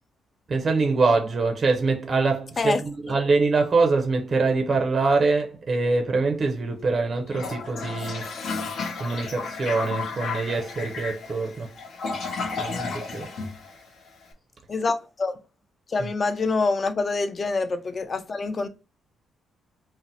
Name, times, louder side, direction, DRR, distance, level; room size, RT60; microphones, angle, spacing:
voice 1, 0.5-8.4 9.0-11.7 12.6-13.3 16.0-16.1, right 3 dB, 40° right, 0.5 m, -24 dB
Toilet flush, 7.3-14.2, left 4 dB, 65° left, 0.7 m, -33 dB
voice 2, 14.7-15.3 15.9-18.7, left 3 dB, 35° left, 0.4 m, -26 dB
2.6 x 2.0 x 3.9 m
cardioid pair, 90°, 0 cm